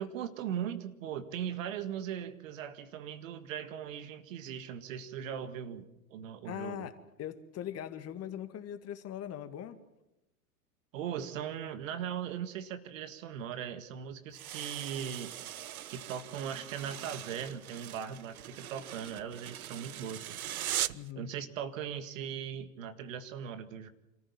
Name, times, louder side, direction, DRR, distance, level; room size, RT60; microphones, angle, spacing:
voice 1, 0.0-6.9 10.9-15.4 15.9-20.4 21.2-23.9, right 8 dB, 65° right, 10 dB, 1.9 m, -39 dB
voice 2, 6.4-9.8 20.9-21.3, left 10 dB, 35° left, 9 dB, 1.9 m, -41 dB
sound 1, 14.3-21.1, right 12 dB, 85° right, 0.7 m, -40 dB
27.0 x 14.5 x 7.3 m, 0.93 s
hypercardioid pair, 95°, 42 cm